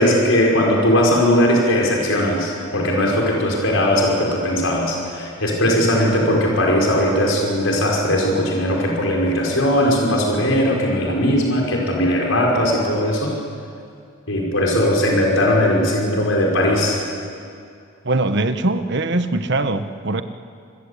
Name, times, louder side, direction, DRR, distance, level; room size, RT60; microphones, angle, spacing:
voice 1, 0.0-13.3 14.3-17.0, left 1 dB, 80° left, -1 dB, 5.5 m, -18 dB
voice 2, 18.0-20.2, right 2 dB, 60° right, 9 dB, 1.3 m, -21 dB
27.0 x 21.5 x 8.4 m, 2.3 s
head